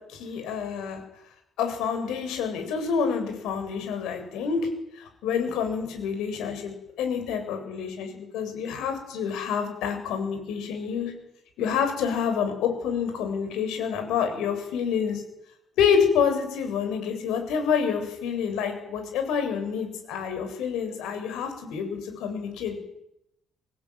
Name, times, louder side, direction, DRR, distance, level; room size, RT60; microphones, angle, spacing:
voice 1, 0.1-1.0 1.6-4.6 5.0-11.1 11.6-15.2 15.8-22.8, left 7 dB, 75° left, 6 dB, 7.9 m, -28 dB
26.0 x 20.0 x 9.7 m, 0.82 s
cardioid pair, 175°, 0 cm